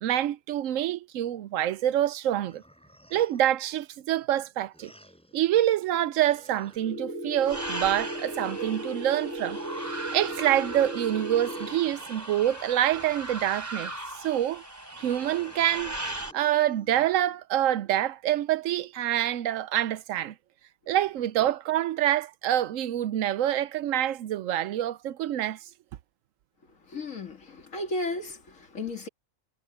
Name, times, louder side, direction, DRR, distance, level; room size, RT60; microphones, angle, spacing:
voice 1, 0.0-2.6 3.1-4.9 5.3-9.6 10.1-13.9 14.2-14.6 15.0-16.0 16.3-20.3 20.9-25.6, right 12 dB, 75° right, 0.9 m, -26 dB
sound 1, 2.5-3.6 4.7-5.5 6.2-7.2 7.8-8.7 9.4-10.5 11.3-13.4 14.9-17.3, equal, 5° left, 5.6 m, -54 dB
sound 2, 6.8-11.7, right 1 dB, 55° right, 2.7 m, -36 dB
sound 3, 7.4-16.3, right 1 dB, 10° right, 3.6 m, -38 dB
voice 2, 26.8-29.1, left 2 dB, 75° left, 2.6 m, -34 dB
omnidirectional pair, 1.4 m